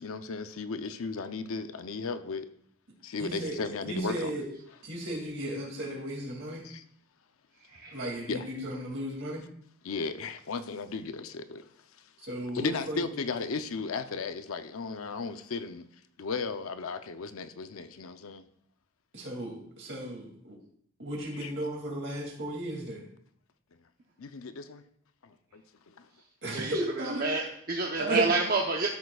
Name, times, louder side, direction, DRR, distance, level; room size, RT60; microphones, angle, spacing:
voice 1, 0.0-2.5 3.0-4.3 6.6-6.8 8.3-8.4 9.8-11.6 12.5-15.8 16.2-18.4 21.4-21.5 24.2-24.8 25.2-25.6, left 4 dB, 90° left, 0.6 m, -35 dB
voice 2, 3.2-3.6 3.8-4.5 4.8-6.6 7.9-9.4 12.2-13.1 19.1-20.6 21.0-23.0 26.4-27.3 28.0-28.3, right 1 dB, 60° right, 2.5 m, -34 dB
voice 3, 27.2-28.9, right 3 dB, 45° right, 0.8 m, -28 dB
13.0 x 6.6 x 2.3 m
head